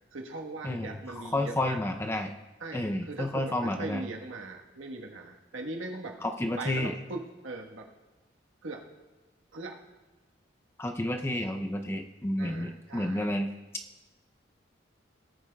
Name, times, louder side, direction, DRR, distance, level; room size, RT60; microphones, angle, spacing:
voice 1, 0.0-1.8 2.6-6.2 6.6-7.9 8.6-8.8 9.5-9.8 12.4-13.3, right 2 dB, 85° right, 2 dB, 1.3 m, -40 dB
voice 2, 1.3-2.3 2.7-4.0 6.2-6.9 10.8-13.5, left 1 dB, 15° left, 5 dB, 0.5 m, -30 dB
19.0 x 8.6 x 2.3 m, 1.2 s
head